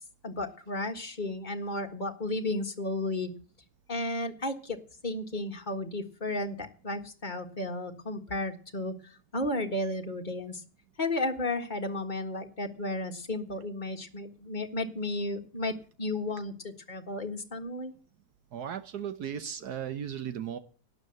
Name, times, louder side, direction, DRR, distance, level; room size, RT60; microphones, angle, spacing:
voice 1, 0.2-3.3 3.9-4.8 5.0-8.9 9.3-10.6 11.0-17.9, left 2 dB, 30° left, 5 dB, 1.6 m, -33 dB
voice 2, 18.5-20.6, right 9 dB, 75° right, 11 dB, 1.5 m, -36 dB
12.0 x 9.5 x 7.8 m, 0.39 s
omnidirectional pair, 1.7 m